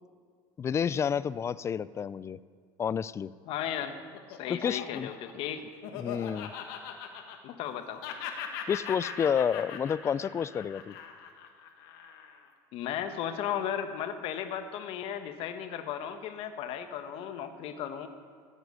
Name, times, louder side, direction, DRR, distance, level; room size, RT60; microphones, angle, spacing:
voice 1, 0.6-2.4 2.8-3.3 4.5-5.1 5.9-6.5 8.7-10.9, left 7 dB, 25° left, 19 dB, 0.4 m, -30 dB
Laughter, 3.5-7.7 8.0-12.5, left 8 dB, 80° left, 1.6 m, -41 dB
voice 2, 3.5-4.0 4.3-5.6 7.4-8.0 12.7-18.1, left 9 dB, 60° left, 8 dB, 1.2 m, -35 dB
15.0 x 8.1 x 6.5 m, 2.1 s
supercardioid pair, 115°, 11 cm